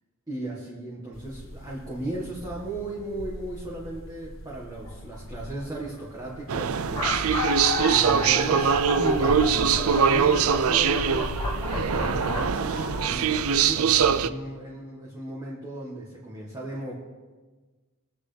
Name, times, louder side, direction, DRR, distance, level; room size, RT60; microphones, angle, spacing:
voice 1, 0.3-7.3 7.9-17.0, right 1 dB, 15° right, -5 dB, 1.6 m, -36 dB
sound 1, 1.1-13.6, left 1 dB, 60° left, 0.9 m, -39 dB
sound 2, 4.9-5.2 6.0-6.1 6.3-6.4 6.7-13.1, left 2 dB, 15° left, 1.9 m, -32 dB
sound 3, 6.5-14.3, right 7 dB, 75° right, 0.4 m, -23 dB
21.0 x 8.1 x 3.4 m, 1.3 s
head